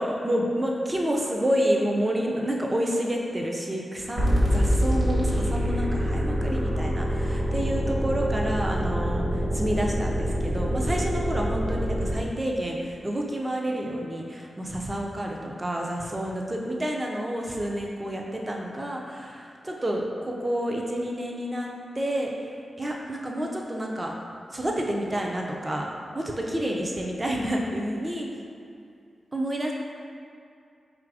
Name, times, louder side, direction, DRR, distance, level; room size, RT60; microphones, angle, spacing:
voice 1, 0.0-4.3 4.5-9.3 9.5-21.7 22.0-22.3 22.8-24.1 24.5-25.9 26.1-28.3 29.3-29.7, equal, 15° right, 0 dB, 0.4 m, -29 dB
sound 1, 4.2-12.2, equal, 35° right, 0.9 m, -25 dB
4.0 x 2.5 x 4.6 m, 2.5 s
wide cardioid pair, 165°, 0 cm